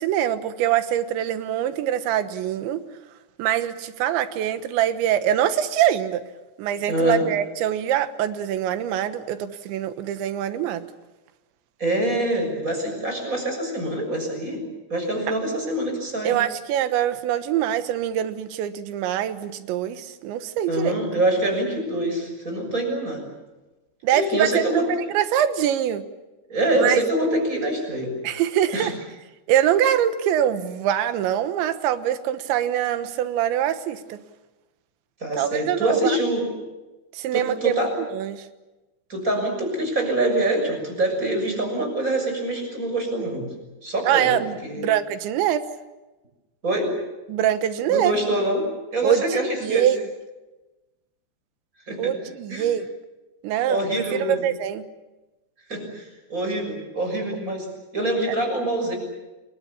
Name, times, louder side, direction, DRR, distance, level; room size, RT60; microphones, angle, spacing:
voice 1, 0.0-2.8 3.4-6.2 6.6-10.9 16.2-21.0 24.0-24.6 25.1-26.0 26.8-27.0 28.2-28.9 29.5-34.2 35.4-36.2 37.1-38.5 44.1-45.7 47.3-48.1 49.0-50.0 52.0-52.9 53.4-54.8 58.3-58.4, right 11 dB, 90° right, 10 dB, 3.6 m, -24 dB
voice 2, 6.9-7.3 11.8-14.6 14.9-16.4 20.7-23.2 24.1-24.9 26.5-28.1 28.7-28.9 35.2-36.5 37.3-37.9 39.1-43.5 43.8-44.3 44.6-44.9 46.6-47.0 47.9-48.7 48.9-49.9 51.9-52.1 52.5-52.7 53.7-54.4 55.7-57.7 57.9-59.0, right 1 dB, 15° right, 3 dB, 6.8 m, -25 dB
29.5 x 22.5 x 7.1 m, 1.1 s
omnidirectional pair, 5.1 m